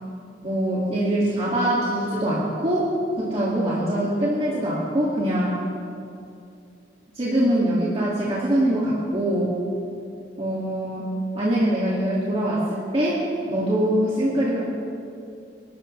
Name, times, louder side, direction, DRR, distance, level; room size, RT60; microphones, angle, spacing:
voice 1, 0.4-2.9 3.2-5.6 7.1-9.6 10.4-11.1 11.3-14.6, right 1 dB, 35° right, -7 dB, 2.2 m, -23 dB
27.0 x 12.5 x 3.3 m, 2.6 s
head